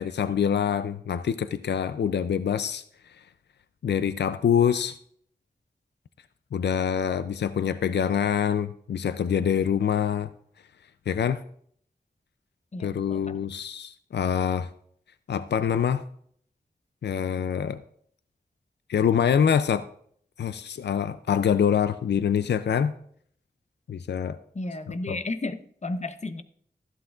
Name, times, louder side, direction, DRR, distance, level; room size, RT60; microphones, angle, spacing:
voice 1, 0.0-2.8 3.8-5.0 6.5-10.3 11.1-11.4 12.8-14.7 15.3-16.0 17.0-17.8 18.9-19.9 20.4-22.9 23.9-24.4 25.1-25.2, left 8 dB, 80° left, 0.4 m, -25 dB
voice 2, 12.7-13.4 24.5-26.4, left 2 dB, 40° left, 0.8 m, -33 dB
13.5 x 11.0 x 2.4 m
cardioid pair, 45°, 17 cm